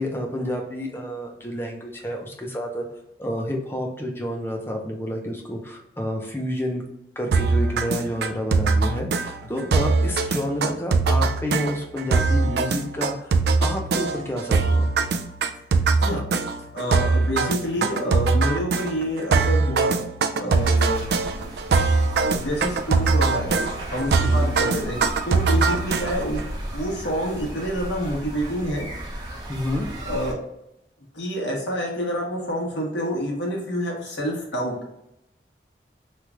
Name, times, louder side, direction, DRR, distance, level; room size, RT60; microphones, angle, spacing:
voice 1, 0.0-2.8 3.2-6.8 7.2-13.3 13.6-14.9 17.8-17.9 24.2-24.5 25.7-25.8 29.5-29.9, equal, 15° left, 1 dB, 0.6 m, -29 dB
sound 1, 7.3-26.4, right 4 dB, 65° right, 0.3 m, -22 dB
voice 2, 16.7-20.0 20.4-21.0 22.3-23.5 23.9-26.4 26.7-28.9 30.0-30.4 31.1-34.7, equal, 85° left, -2 dB, 1.2 m, -28 dB
sound 2, 20.5-30.3, right 1 dB, 25° right, 0.7 m, -35 dB
3.2 x 2.4 x 3.2 m, 0.83 s
head